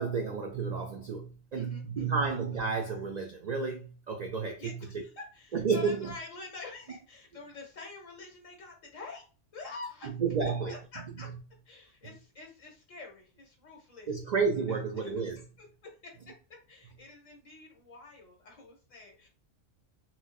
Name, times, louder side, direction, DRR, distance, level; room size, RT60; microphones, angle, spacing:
voice 1, 0.0-4.7 5.5-6.1 10.1-10.7 14.1-15.4, right 5 dB, 75° right, 0.4 m, -31 dB
voice 2, 1.5-2.2 4.6-9.2 9.5-10.1 10.4-11.3 11.7-14.1 14.7-15.1 15.6-16.3 16.7-19.3, left 3 dB, 85° left, 1.6 m, -47 dB
6.0 x 2.1 x 2.3 m
omnidirectional pair, 1.3 m